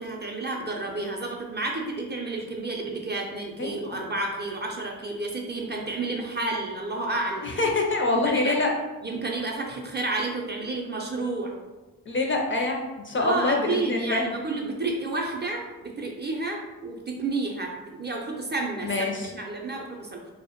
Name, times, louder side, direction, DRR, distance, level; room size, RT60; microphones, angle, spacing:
voice 1, 0.0-7.5 8.2-8.5 9.0-11.5 13.2-19.1 19.3-20.2, right 2 dB, 30° right, 0 dB, 0.4 m, -31 dB
voice 2, 7.4-8.7 12.1-14.3 18.8-19.3, left 2 dB, 35° left, 1 dB, 0.4 m, -25 dB
2.1 x 2.0 x 2.8 m, 1.2 s
cardioid pair, 50°, 36 cm